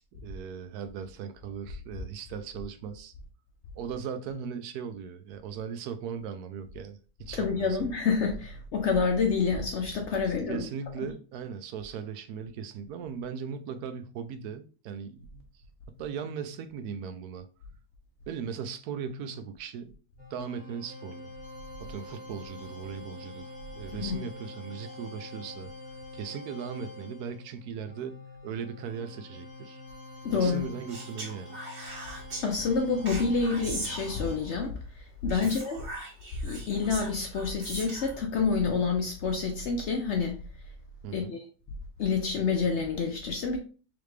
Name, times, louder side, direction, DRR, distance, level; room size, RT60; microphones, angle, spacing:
voice 1, 0.0-3.1 3.8-7.8 10.5-15.4 15.9-17.5 18.3-19.9 20.3-21.3 21.8-25.7 26.1-29.8 30.3-31.6 35.4-35.6 41.0-41.3, right 7 dB, 75° right, 1.1 m, -38 dB
voice 2, 7.3-10.6 23.9-24.2 30.2-30.6 32.4-35.8 36.4-40.3 41.1-41.4 42.0-43.6, left 5 dB, 65° left, 0.7 m, -28 dB
sound 1, 20.2-34.4, left 2 dB, 5° right, 1.1 m, -46 dB
Speech, 30.9-32.5 33.1-34.5 35.3-38.2, right 2 dB, 45° right, 1.4 m, -40 dB
3.7 x 3.4 x 3.2 m
omnidirectional pair, 1.7 m